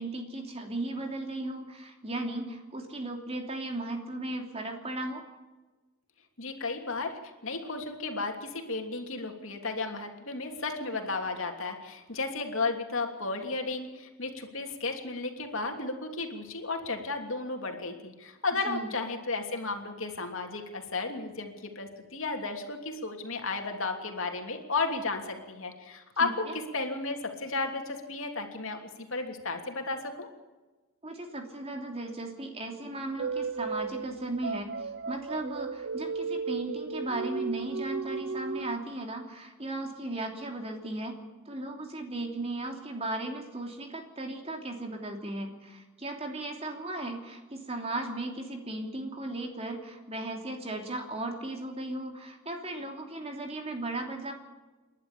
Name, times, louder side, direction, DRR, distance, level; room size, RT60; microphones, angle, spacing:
voice 1, 0.0-5.2 18.7-18.9 26.2-26.5 31.0-41.1 41.4-54.3, right 2 dB, 30° right, 3 dB, 3.0 m, -36 dB
voice 2, 6.4-26.4 26.7-30.3, left 3 dB, 65° left, 3 dB, 3.0 m, -34 dB
sound 1, 33.2-38.8, right 4 dB, 55° right, 0.6 m, -35 dB
29.0 x 11.5 x 8.4 m, 1.2 s
head